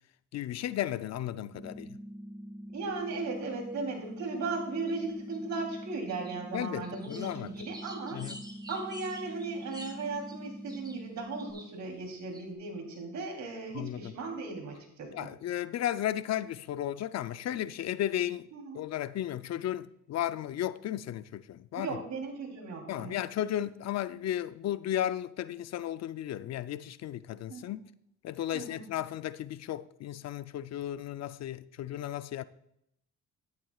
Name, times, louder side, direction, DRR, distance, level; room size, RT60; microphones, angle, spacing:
voice 1, 0.3-2.0 6.5-7.5 8.1-8.4 13.7-14.1 15.1-18.5 18.7-22.0 22.9-27.8 28.2-32.4, left 12 dB, 60° left, 0.5 m, -34 dB
sound 1, 1.5-11.5, equal, 5° left, 1.5 m, -44 dB
voice 2, 2.7-8.2 8.7-15.3 18.5-18.8 21.8-23.1 27.5-27.7 28.5-28.8, right 3 dB, 70° right, 3.2 m, -37 dB
sound 2, 3.2-3.3 4.2-4.5 4.9-5.6 5.9-11.7 12.3-12.4, equal, 15° right, 1.8 m, -49 dB
12.0 x 10.5 x 2.3 m
cardioid pair, 90°, 30 cm